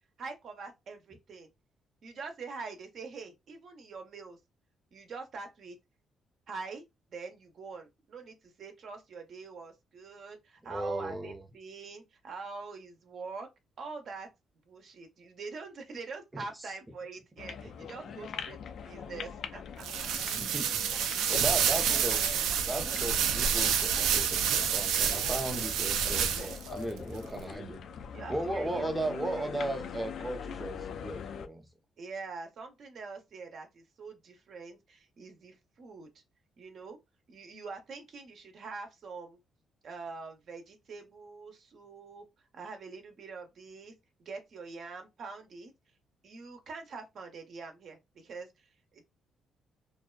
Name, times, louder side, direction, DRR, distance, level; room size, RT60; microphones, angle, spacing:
voice 1, 0.2-1.5 2.0-4.4 4.9-5.8 6.5-6.8 7.1-13.5 13.8-14.3 14.7-20.1 21.4-22.6 28.1-29.5 32.0-36.1 36.6-37.0 37.3-39.4 39.8-42.2 42.5-43.9 44.2-45.7 46.2-49.0, right 4 dB, 60° right, 0.7 m, -44 dB
voice 2, 10.7-11.4 16.3-16.4 17.8-18.1 20.3-20.8 21.3-22.3 22.7-27.8 28.3-31.6, right 1 dB, 15° right, 0.6 m, -36 dB
sound 1, 17.4-31.5, left 7 dB, 70° left, 0.3 m, -43 dB
sound 2, 19.8-26.7, right 8 dB, 90° right, 0.3 m, -28 dB
2.5 x 2.2 x 2.3 m
cardioid pair, 90°, 0 cm